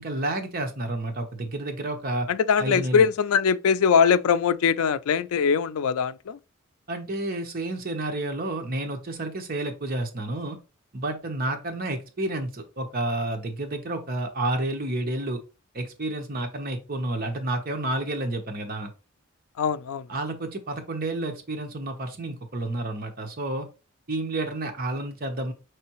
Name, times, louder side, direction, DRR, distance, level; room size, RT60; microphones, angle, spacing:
voice 1, 0.0-2.3 2.6-3.1 6.9-10.6 10.9-15.4 15.7-18.9 20.1-23.7 24.1-25.5, right 2 dB, 45° right, 0.9 m, -30 dB
voice 2, 2.3-6.4 19.6-20.1, left 6 dB, 90° left, 0.4 m, -22 dB
5.5 x 3.3 x 2.9 m
head